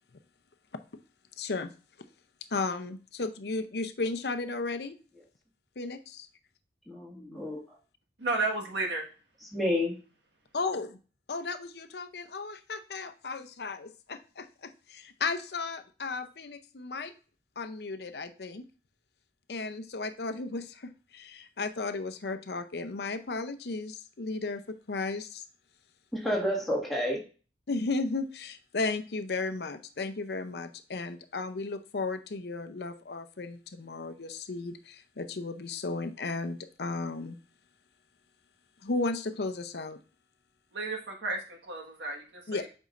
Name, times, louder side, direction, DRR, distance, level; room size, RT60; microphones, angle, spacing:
voice 1, 1.4-1.7 2.5-5.0 5.8-6.3 10.5-11.0 11.3-17.1 17.6-18.6 19.5-25.4 27.7-37.4 38.8-40.0 42.5-42.7, left 3 dB, 65° left, 10 dB, 0.6 m, -34 dB
voice 2, 6.9-7.6 9.5-10.0 26.1-27.2, left 1 dB, ahead, -4 dB, 1.8 m, -29 dB
voice 3, 8.2-9.0 40.7-42.7, right 3 dB, 85° right, 2 dB, 1.6 m, -33 dB
8.2 x 5.4 x 2.5 m, 0.36 s
head